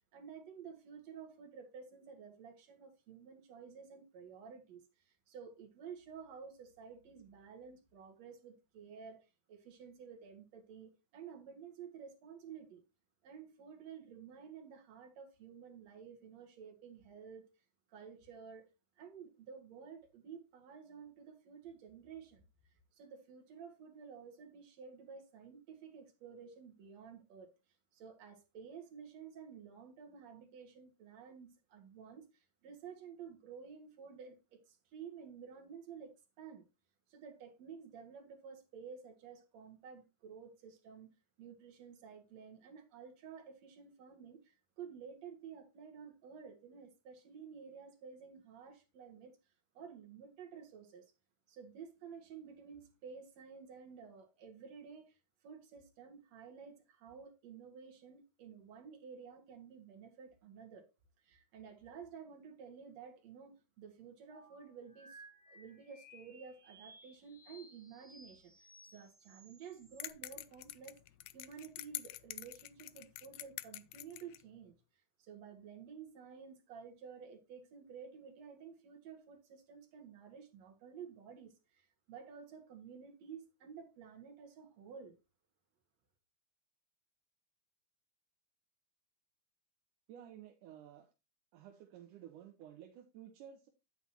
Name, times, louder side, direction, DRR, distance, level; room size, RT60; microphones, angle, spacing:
voice 1, 0.1-12.8 13.2-17.5 17.9-18.7 19.0-27.5 27.9-36.6 37.1-41.1 41.4-49.4 49.7-51.1 51.5-60.8 61.2-68.5 68.8-71.0 71.3-85.2, right 6 dB, 55° right, 2.8 m, -52 dB
sound 1, 64.3-70.1, right 1 dB, 5° left, 1.4 m, -59 dB
sound 2, 70.0-74.4, left 17 dB, 85° left, 1.6 m, -46 dB
voice 2, 90.1-91.1 91.5-93.7, right 10 dB, 75° right, 2.2 m, -53 dB
9.3 x 9.2 x 2.9 m
omnidirectional pair, 3.9 m